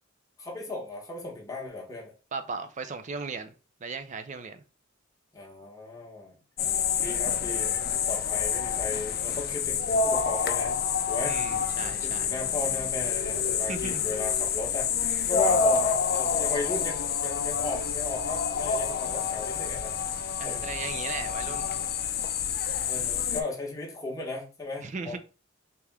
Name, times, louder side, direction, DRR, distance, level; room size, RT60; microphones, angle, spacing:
voice 1, 0.4-2.1 5.3-6.4 7.0-10.8 11.0-11.4 11.8-19.9 20.4-20.6 21.1-21.6 22.9-25.2, left 3 dB, 15° left, 1.1 m, -36 dB
voice 2, 2.3-3.5 3.8-4.6 7.0-7.3 11.2-12.3 13.7-14.0 20.4-21.8 24.8-25.2, right 4 dB, 35° right, 0.4 m, -37 dB
sound 1, 6.6-23.4, left 6 dB, 50° left, 0.5 m, -28 dB
3.4 x 2.9 x 3.5 m
head